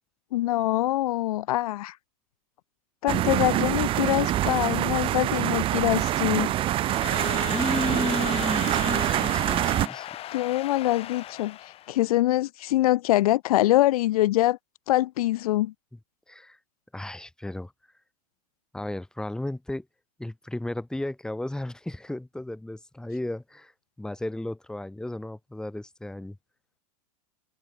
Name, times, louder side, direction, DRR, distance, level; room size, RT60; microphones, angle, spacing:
voice 1, 0.3-2.0 3.0-6.5 10.3-14.6 14.9-15.7, left 15 dB, 70° left, 3.0 m, -24 dB
sound 1, 3.1-9.9, right 14 dB, 30° right, 0.7 m, -25 dB
Crowd / Alarm, 6.4-12.0, left 13 dB, 30° left, 2.0 m, -37 dB
voice 2, 7.5-10.1 15.9-16.0 16.3-16.6 16.9-17.7 18.7-19.9 20.2-23.7 24.0-26.4, left 1 dB, 5° left, 5.6 m, -34 dB
supercardioid pair, 135°, 19 cm